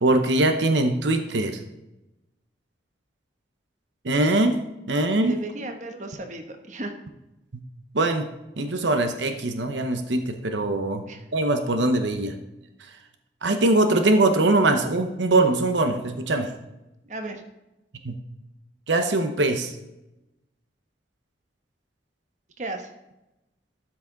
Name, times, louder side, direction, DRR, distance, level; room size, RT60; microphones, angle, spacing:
voice 1, 0.0-1.6 4.0-4.6 4.9-5.3 7.9-8.3 8.6-11.0 11.3-12.3 13.4-16.5 18.0-18.1 18.9-19.7, right 2 dB, 85° right, 7 dB, 0.9 m, -22 dB
voice 2, 5.3-6.9 11.1-11.2 17.0-17.4 22.6-22.9, right 2 dB, 40° right, 5 dB, 1.2 m, -35 dB
13.0 x 6.0 x 3.9 m, 0.95 s
head